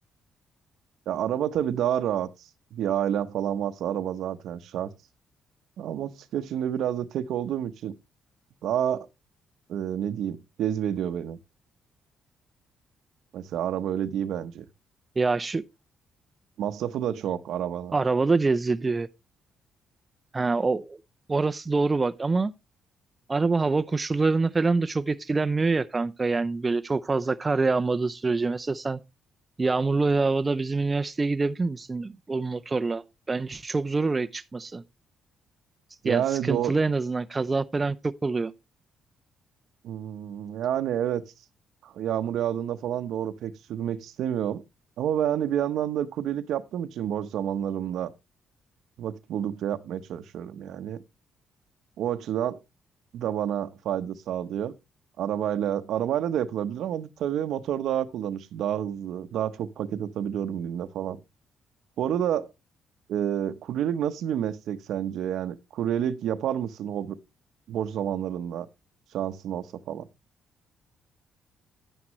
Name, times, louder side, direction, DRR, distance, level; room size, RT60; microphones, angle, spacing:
voice 1, 1.1-2.3 2.7-4.9 5.8-7.9 8.6-9.1 9.7-11.4 13.3-14.6 16.6-18.0 36.0-36.7 39.8-41.2 41.8-44.6 45.0-48.1 49.0-51.0 52.0-52.6 53.1-54.7 55.2-61.2 62.0-62.5 63.1-67.2 67.7-68.7 69.1-70.1, right 10 dB, 75° right, 0.8 m, -29 dB
voice 2, 15.2-15.6 17.9-19.1 20.3-21.0 21.3-22.5 23.3-29.0 29.6-34.8 36.0-38.5, right 3 dB, 25° right, 0.6 m, -25 dB
10.0 x 9.7 x 3.1 m
cardioid pair, 90°, 0 cm